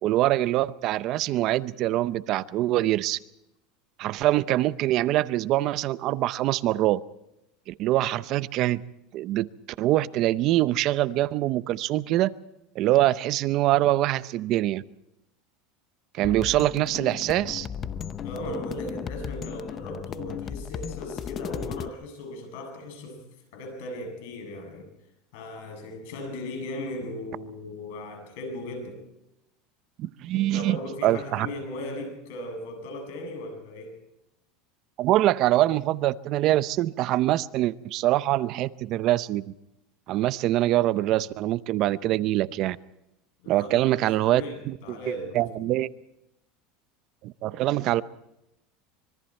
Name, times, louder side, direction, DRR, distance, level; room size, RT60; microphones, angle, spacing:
voice 1, 0.0-3.2 4.0-7.0 7.7-8.8 9.1-9.5 9.8-12.3 12.8-14.8 16.1-17.7 30.0-31.5 35.0-39.5 40.1-42.8 43.5-45.0 45.3-45.9 47.2-48.0, right 15 dB, 45° right, 16 dB, 0.6 m, -24 dB
sound 1, 16.2-21.9, left 8 dB, 30° left, 0.7 m, -35 dB
voice 2, 18.2-23.2 23.5-24.9 25.3-29.0 30.3-34.0 43.4-45.5, left 1 dB, 75° left, 6 dB, 7.8 m, -37 dB
25.5 x 23.0 x 4.4 m, 0.86 s
supercardioid pair, 145°, 0 cm